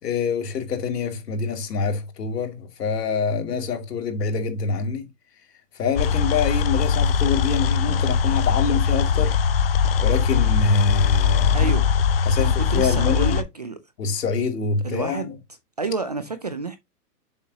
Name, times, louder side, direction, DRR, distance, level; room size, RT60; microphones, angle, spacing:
voice 1, 0.0-5.1 5.7-9.4 10.0-11.7 12.3-13.4 14.0-15.4, left 5 dB, 90° left, 2.6 m, -25 dB
sound 1, 6.0-13.4, left 6 dB, 40° left, 0.4 m, -21 dB
voice 2, 11.5-11.9 12.4-13.8 14.8-15.3 15.8-16.8, right 3 dB, 30° right, 0.4 m, -29 dB
7.0 x 6.2 x 2.8 m
hypercardioid pair, 165°, 46 cm